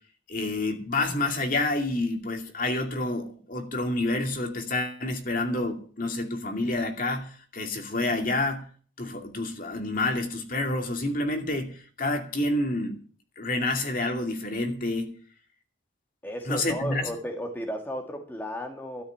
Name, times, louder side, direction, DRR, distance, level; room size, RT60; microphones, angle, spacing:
voice 1, 0.3-8.6 9.0-13.0 13.4-15.1 16.5-17.0, left 2 dB, 45° left, 2.5 m, -28 dB
voice 2, 16.2-19.0, equal, 10° left, 1.7 m, -34 dB
13.0 x 6.4 x 9.9 m
head